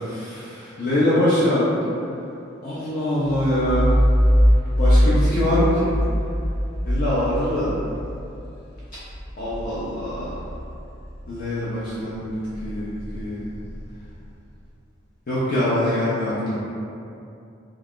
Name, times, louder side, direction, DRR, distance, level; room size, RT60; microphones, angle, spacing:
voice 1, 0.0-1.7 2.6-4.0 4.8-6.0 6.8-7.7 9.4-10.4 11.3-13.5 15.3-16.6, left 1 dB, 45° left, -9 dB, 0.5 m, -23 dB
sound 1, 3.2-11.5 11.9-14.5, equal, 30° right, 0.5 m, -23 dB
2.3 x 2.3 x 3.5 m, 2.6 s
head